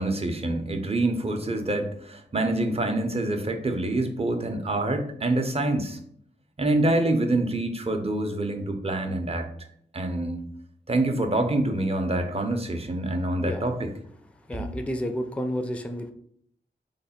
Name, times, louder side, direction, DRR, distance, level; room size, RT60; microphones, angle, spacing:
voice 1, 0.0-6.0 6.6-9.5 9.9-10.4 10.9-13.9 14.5-14.8, right 2 dB, 35° right, 5 dB, 0.6 m, -26 dB
voice 2, 14.5-16.1, equal, 5° left, 7 dB, 0.4 m, -30 dB
3.2 x 2.2 x 4.2 m, 0.66 s
cardioid pair, 55°, 19 cm